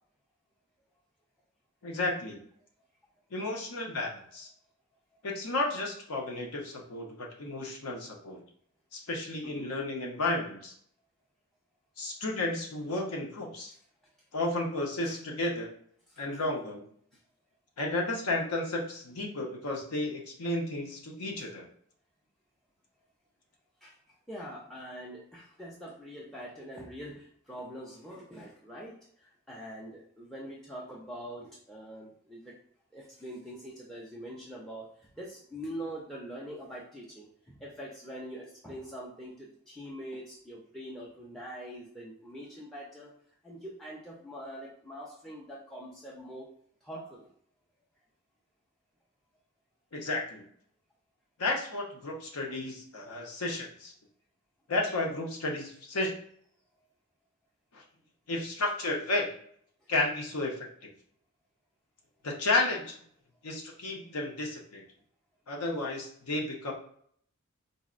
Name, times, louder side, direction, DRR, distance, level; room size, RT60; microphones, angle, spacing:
voice 1, 1.8-2.4 3.3-4.5 5.2-8.4 8.9-10.7 12.0-13.7 14.3-15.7 16.2-16.8 17.8-21.7 49.9-50.4 51.4-53.9 54.7-56.1 57.7-57.8 58.3-59.3 59.9-60.7 62.2-62.9 63.4-64.8 65.5-66.7, left 2 dB, 90° left, 0 dB, 0.7 m, -32 dB
voice 2, 9.4-9.7 15.0-15.2 16.1-16.2 23.8-32.6 32.9-43.1 43.4-46.5 46.8-47.3, equal, ahead, -4 dB, 0.4 m, -44 dB
3.9 x 2.0 x 2.4 m, 0.63 s
head